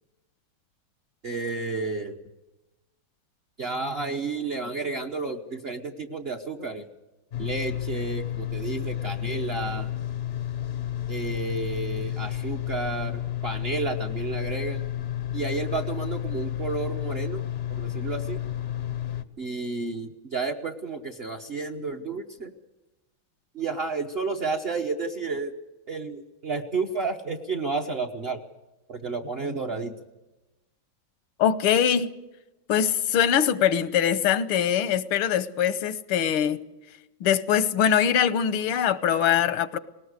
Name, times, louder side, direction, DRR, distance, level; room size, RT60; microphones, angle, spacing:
voice 1, 1.2-2.2 3.6-6.9 7.4-9.9 11.1-14.8 15.3-17.4 17.7-18.4 19.4-22.5 23.5-25.5 25.9-28.4 28.9-29.9, right 4 dB, 40° right, 0.9 m, -31 dB
sound 1, 7.3-19.2, left 11 dB, 60° left, 0.6 m, -31 dB
voice 2, 31.4-32.1 32.7-36.6 37.2-39.8, left 9 dB, 85° left, 1.8 m, -22 dB
20.0 x 18.5 x 8.1 m
omnidirectional pair, 2.3 m